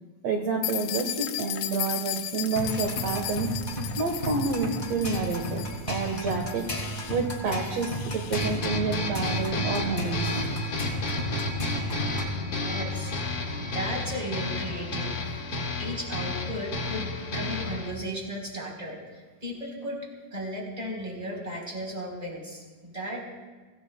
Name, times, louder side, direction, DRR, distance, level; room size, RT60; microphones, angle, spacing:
voice 1, 0.2-3.5 4.0-6.7 7.1-10.4, right 4 dB, 60° right, 2 dB, 2.1 m, -29 dB
sound 1, 0.6-8.4, left 13 dB, 85° left, 2.4 m, -36 dB
sound 2, 2.5-12.3, right 1 dB, 20° left, 1.6 m, -34 dB
sound 3, 8.3-17.9, left 2 dB, 50° left, 2.2 m, -31 dB
voice 2, 12.3-15.1 15.5-23.5, equal, 10° right, -1 dB, 3.6 m, -36 dB
25.0 x 16.5 x 2.2 m, 1.4 s
omnidirectional pair, 4.0 m